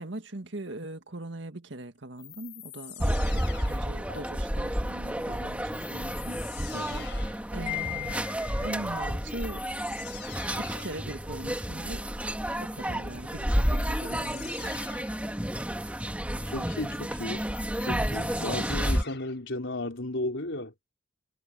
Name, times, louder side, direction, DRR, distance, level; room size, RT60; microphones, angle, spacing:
voice 1, 0.0-6.4 7.5-8.3 8.6-9.7 10.5-12.1 12.6-14.7 17.8-18.2, right 1 dB, 75° right, 1.8 m, -40 dB
sound 1, 2.2-4.2 5.7-7.5 8.8-8.9 9.3-11.1 13.5-15.3 17.0-19.4, left 10 dB, 65° left, 4.4 m, -45 dB
sound 2, 3.0-19.0, equal, 10° right, 1.8 m, -31 dB
voice 2, 6.7-7.1 16.5-17.5 17.9-20.7, left 1 dB, 90° left, 3.8 m, -34 dB
Wind chime, 7.7-9.0, left 15 dB, 35° left, 1.2 m, -37 dB
head